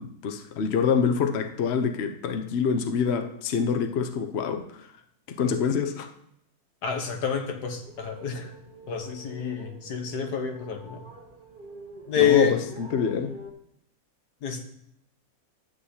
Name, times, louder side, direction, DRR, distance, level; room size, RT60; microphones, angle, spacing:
voice 1, 0.0-4.9 5.3-6.1 12.2-13.3, left 6 dB, 50° left, 6 dB, 0.9 m, -26 dB
voice 2, 6.8-8.5 8.9-11.0 12.1-12.6 14.4-14.6, left 7 dB, 80° left, 4 dB, 1.7 m, -27 dB
sound 1, 7.6-13.5, right 2 dB, 35° right, 1.0 m, -47 dB
11.5 x 8.1 x 2.8 m, 0.73 s
omnidirectional pair, 1.7 m